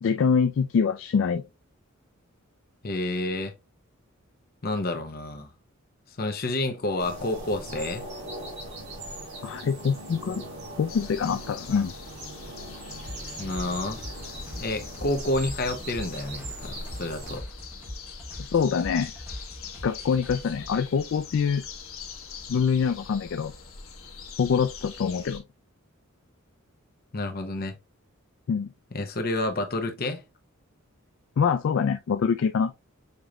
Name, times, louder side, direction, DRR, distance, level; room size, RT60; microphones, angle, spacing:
voice 1, 0.0-1.4 9.4-10.5 10.8-11.9 18.5-19.1 19.8-21.6 22.5-23.5 24.4-25.4 28.5-28.7 31.4-32.7, left 6 dB, 60° left, 0.3 m, -24 dB
voice 2, 2.8-3.5 4.6-5.5 6.2-8.0 13.4-14.0 14.6-17.4 27.1-27.8 28.9-30.2, left 2 dB, 45° left, 0.8 m, -29 dB
sound 1, 7.0-17.4, right 1 dB, 55° right, 2.1 m, -40 dB
sound 2, 10.9-25.4, left 5 dB, 85° left, 1.1 m, -43 dB
sound 3, 13.0-20.7, equal, 10° right, 1.3 m, -42 dB
6.6 x 3.0 x 2.4 m
head